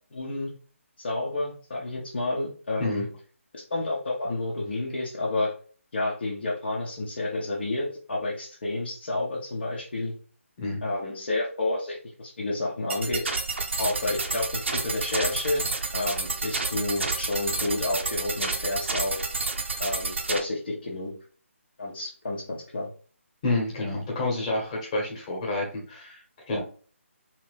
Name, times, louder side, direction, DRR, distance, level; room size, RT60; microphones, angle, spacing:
voice 1, 0.1-0.5 1.0-3.1 3.5-5.5 5.9-10.1 10.8-13.3 13.8-19.2 19.8-21.1 21.8-22.9, left 2 dB, 45° left, -4 dB, 1.0 m, -30 dB
sound 1, 12.9-20.4, right 3 dB, 55° right, 0.7 m, -30 dB
voice 2, 23.4-26.6, left 2 dB, 25° left, -2 dB, 1.4 m, -29 dB
3.4 x 3.0 x 3.2 m, 0.41 s
figure-of-eight pair, 145°, 7 cm